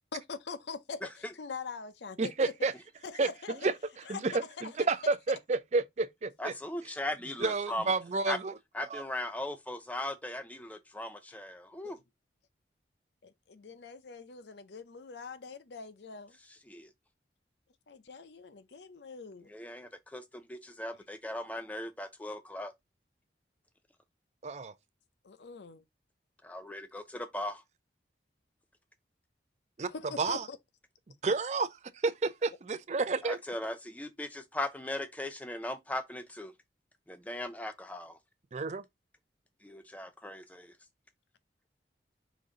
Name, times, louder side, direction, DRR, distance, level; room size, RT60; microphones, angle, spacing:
voice 1, 0.1-2.5 3.0-3.6 4.1-4.9 11.3-11.4 11.8-12.0 13.2-16.4 17.9-19.5 25.2-25.8 29.8-30.6, left 5 dB, 75° left, 0.6 m, -43 dB
voice 2, 2.2-2.7 3.2-3.3 3.6-3.7 4.1-6.5 7.4-8.5 8.9-9.0 24.4-24.7 29.8-29.9 30.2-30.5 31.2-31.7 32.0-33.4 38.5-38.8, right 3 dB, 40° right, 0.4 m, -30 dB
voice 3, 6.4-7.9 8.3-8.4 8.7-12.0 16.7-16.9 19.5-22.7 26.4-27.6 33.2-36.5 37.1-38.2 39.6-40.7, left 1 dB, 10° left, 0.6 m, -38 dB
5.1 x 2.7 x 3.7 m
head